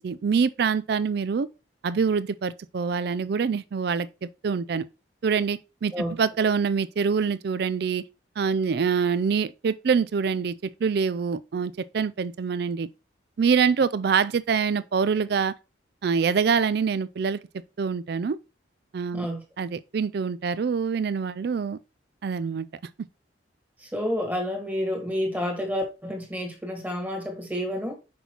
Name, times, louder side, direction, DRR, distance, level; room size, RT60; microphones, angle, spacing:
voice 1, 0.0-1.5 1.8-4.8 5.2-5.9 6.2-8.0 8.4-10.5 10.8-12.9 13.4-15.5 16.0-17.4 17.8-18.4 18.9-19.3 19.6-21.8 22.2-22.7, right 6 dB, 55° right, 0.4 m, -25 dB
voice 2, 23.8-27.9, equal, 10° right, 1.5 m, -29 dB
6.0 x 5.4 x 2.9 m
head